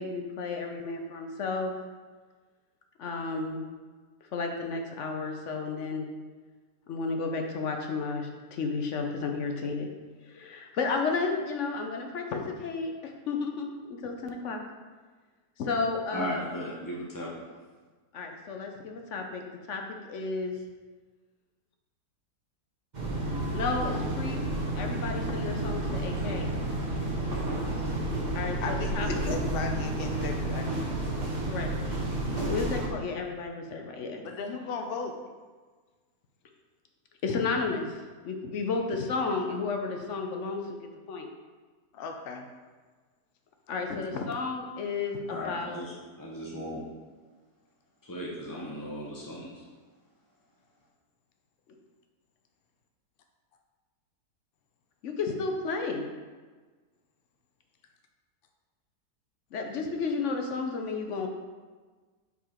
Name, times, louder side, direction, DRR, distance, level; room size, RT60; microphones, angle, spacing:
voice 1, 0.0-1.7 3.0-3.6 4.3-6.1 6.9-9.9 10.3-14.6 15.6-16.4 18.1-19.4 19.7-20.5 23.5-24.4 24.7-26.5 28.3-29.2 31.5-31.7 32.4-34.2 37.2-37.9 38.2-40.8 41.1-41.3 43.7-45.8 55.0-56.1 59.5-61.3, left 4 dB, 60° left, 3 dB, 0.9 m, -32 dB
voice 2, 16.1-17.3 45.3-46.8 48.0-49.6, equal, 30° left, -4 dB, 0.4 m, -37 dB
sound 1, 22.9-32.9, right 1 dB, 30° right, 1.1 m, -31 dB
voice 3, 28.6-30.8 34.2-35.1 41.9-42.4, left 4 dB, 90° left, 3 dB, 0.5 m, -36 dB
5.5 x 4.8 x 4.4 m, 1.4 s
omnidirectional pair, 1.7 m